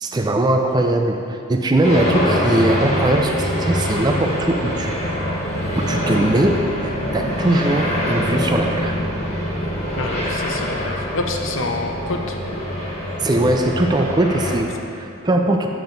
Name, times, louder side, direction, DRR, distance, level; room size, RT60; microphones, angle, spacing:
voice 1, 0.0-4.9 5.7-9.0 13.2-15.7, right 1 dB, 20° right, 3 dB, 0.3 m, -20 dB
sound 1, 1.8-14.6, equal, 30° left, 1.2 m, -24 dB
voice 2, 10.0-12.4, left 2 dB, 70° left, 3 dB, 0.7 m, -27 dB
7.5 x 7.0 x 3.9 m, 2.6 s
head